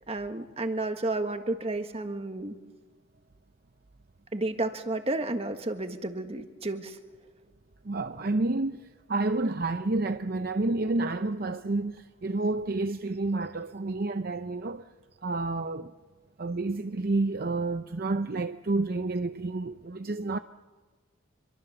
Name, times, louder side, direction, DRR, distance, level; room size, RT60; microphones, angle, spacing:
voice 1, 0.1-2.5 4.3-7.0, right 2 dB, 30° right, 1.6 m, -31 dB
voice 2, 7.8-14.9 15.2-15.9 16.4-20.4, right 2 dB, 50° right, 0.6 m, -29 dB
26.5 x 23.5 x 7.1 m
head